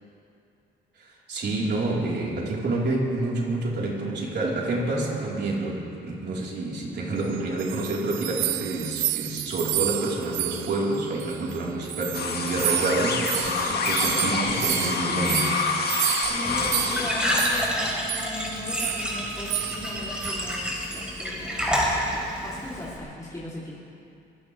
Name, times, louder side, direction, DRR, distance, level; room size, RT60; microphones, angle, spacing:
voice 1, 1.0-15.5, right 2 dB, 60° right, -4 dB, 4.4 m, -28 dB
sound 1, 7.3-11.6 11.8-17.8 18.1-18.3 18.8-19.1 19.5-19.9 20.2-20.4 20.9-21.2, right 17 dB, 90° right, 0.4 m, -31 dB
sound 2, 12.1-17.5, left 4 dB, 55° left, 2.0 m, -27 dB
Glass / Trickle dribble / Fill (with liquid), 16.2-23.0, equal, 5° right, 4.6 m, -29 dB
voice 2, 16.3-20.6 20.9-23.8, left 1 dB, 15° left, -8 dB, 3.4 m, -38 dB
24.0 x 16.5 x 3.5 m, 2.6 s
cardioid pair, 90°, 20 cm